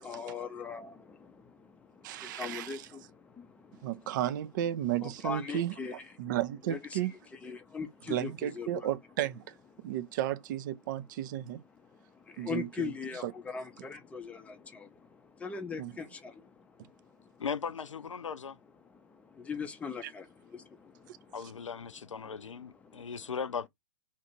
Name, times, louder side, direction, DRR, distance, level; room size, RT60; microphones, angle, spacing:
voice 1, 0.0-0.9 2.4-2.8 5.0-6.0 6.7-7.0 7.4-8.9 12.4-14.5 15.4-16.1 19.5-20.3, left 5 dB, 10° left, 0.5 m, -38 dB
voice 2, 2.0-2.9 3.8-5.7 6.2-7.1 8.1-9.6 9.8-11.6 12.4-12.9 13.2-13.3 15.8-15.9 20.0-20.1 21.1-21.2, right 12 dB, 40° right, 0.4 m, -33 dB
voice 3, 17.4-18.6 21.3-23.7, left 6 dB, 85° left, 0.4 m, -38 dB
2.9 x 2.5 x 4.3 m
figure-of-eight pair, 120°, 16 cm